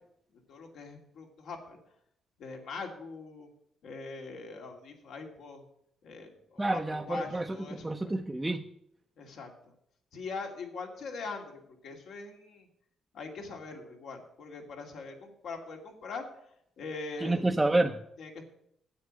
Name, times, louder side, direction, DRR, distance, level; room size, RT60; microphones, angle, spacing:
voice 1, 0.5-1.8 2.4-3.5 3.8-5.6 6.0-8.1 9.2-9.5 10.1-12.7 13.1-16.2 16.8-17.5 18.2-18.4, left 4 dB, 70° left, 2 dB, 2.4 m, -42 dB
voice 2, 6.6-7.5 7.8-8.6 17.2-18.0, right 2 dB, 15° right, 2 dB, 0.7 m, -28 dB
9.6 x 8.3 x 7.4 m, 0.75 s
cardioid pair, 90°, 0 cm